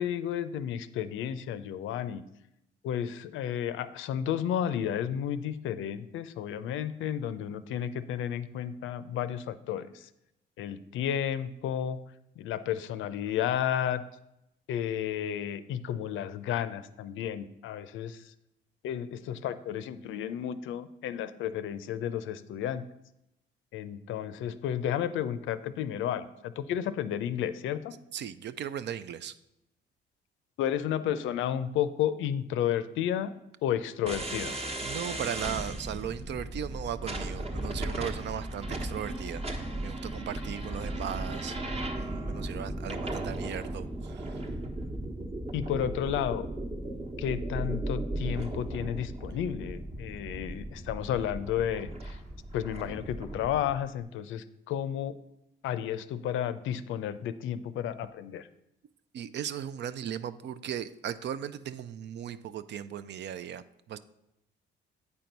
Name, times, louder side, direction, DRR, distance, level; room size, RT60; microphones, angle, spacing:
voice 1, 0.0-2.2 2.8-10.1 10.6-12.0 12.4-14.0 14.7-18.3 18.8-22.8 23.7-28.0 30.6-33.3 33.6-34.6 45.5-46.5 47.2-52.2 52.5-55.2 55.6-58.5, left 10 dB, 85° left, 13 dB, 0.5 m, -32 dB
voice 2, 28.1-29.4 34.8-39.5 39.8-41.6 41.9-44.4 59.1-64.0, right 9 dB, 65° right, 14 dB, 0.5 m, -37 dB
sound 1, 34.1-53.8, right 1 dB, 30° right, 1.1 m, -36 dB
8.5 x 4.5 x 5.2 m, 0.85 s
cardioid pair, 90°, 20 cm